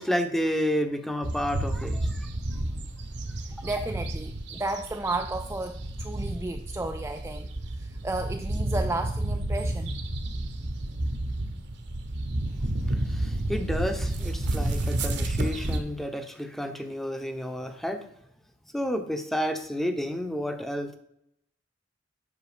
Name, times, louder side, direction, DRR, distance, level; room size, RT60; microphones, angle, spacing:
voice 1, 0.0-2.3 12.9-18.1 18.7-20.9, equal, ahead, 7 dB, 0.8 m, -30 dB
sound 1, 1.2-15.8, right 1 dB, 65° right, 1.0 m, -31 dB
voice 2, 3.4-10.0, right 2 dB, 15° right, 5 dB, 0.4 m, -33 dB
8.3 x 5.9 x 5.0 m, 0.75 s
head